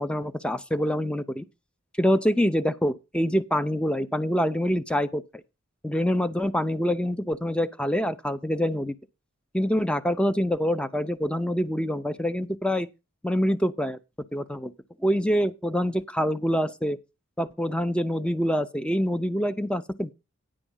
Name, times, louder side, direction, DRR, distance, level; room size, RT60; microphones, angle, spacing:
voice 1, 0.0-1.4 2.0-5.2 5.8-8.9 9.5-12.9 13.2-14.0 14.3-14.7 15.0-17.0 17.4-20.1, equal, 5° left, 0.5 m, -25 dB
10.0 x 5.0 x 7.1 m
head